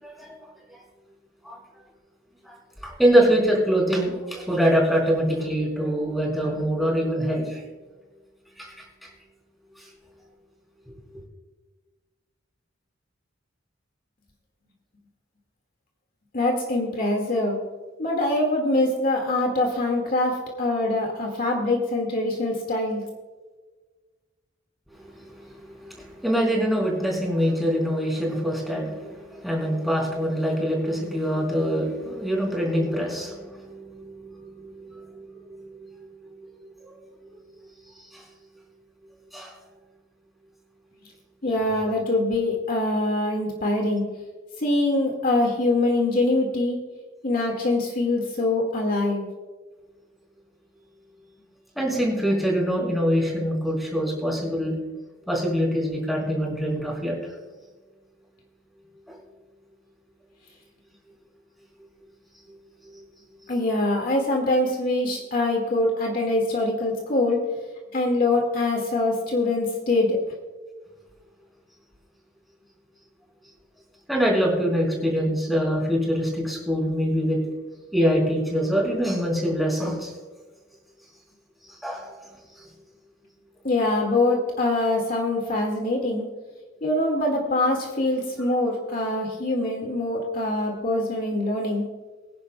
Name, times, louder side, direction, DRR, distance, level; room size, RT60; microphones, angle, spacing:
voice 1, 0.0-0.3 0.7-0.8 1.4-1.6 2.4-2.5 2.8-7.7 8.6-8.7 9.0-9.1 9.8-9.9 25.0-36.5 36.8-37.0 38.0-38.2 39.3-39.5 51.7-54.8 55.3-57.2 59.1-59.2 62.9-63.0 74.1-77.4 77.9-80.1 81.6-82.1 82.5-82.7, equal, ahead, -3 dB, 4.3 m, -25 dB
voice 2, 16.3-17.6 18.0-23.0 41.4-44.0 44.6-46.8 47.2-49.2 63.5-67.4 67.9-70.2 83.6-86.3 86.8-91.9, left 2 dB, 45° left, 1 dB, 1.9 m, -24 dB
24.0 x 10.5 x 2.3 m, 1.3 s
head